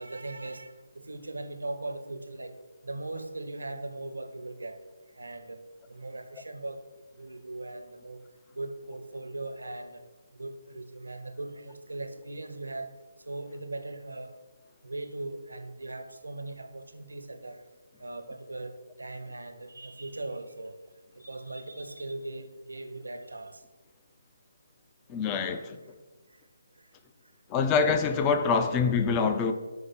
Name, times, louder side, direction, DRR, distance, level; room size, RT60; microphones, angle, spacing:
voice 1, 0.0-2.6 2.8-4.8 5.2-5.6 5.9-8.2 8.5-10.0 10.3-12.9 13.2-14.3 14.8-17.6 18.0-20.7 21.1-23.6 26.3-26.4, right 2 dB, 90° right, 0.8 m, -39 dB
voice 2, 25.1-25.8 27.5-29.5, left 5 dB, 20° left, 0.4 m, -25 dB
5.7 x 3.2 x 5.7 m
figure-of-eight pair, 155°, 0 cm